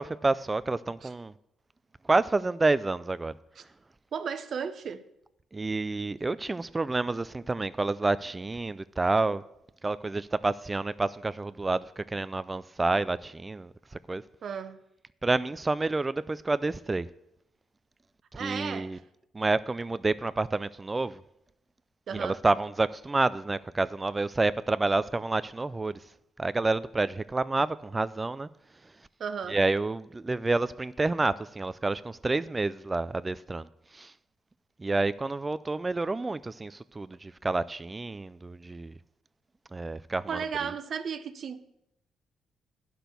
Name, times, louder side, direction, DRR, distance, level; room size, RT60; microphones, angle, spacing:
voice 1, 0.0-1.3 2.1-3.3 5.5-9.4 9.8-13.7 14.1-14.2 15.2-17.1 18.4-19.0 19.3-21.2 22.1-26.0 26.4-28.5 29.5-33.7 33.9-34.1 34.8-38.9 39.7-40.3, right 3 dB, 20° right, 0.3 m, -29 dB
voice 2, 4.1-5.0 14.4-14.8 18.3-19.0 22.1-22.4 29.2-29.6 40.3-41.6, right 7 dB, 55° right, 0.7 m, -34 dB
10.0 x 6.0 x 6.8 m
cardioid pair, 90°, 0 cm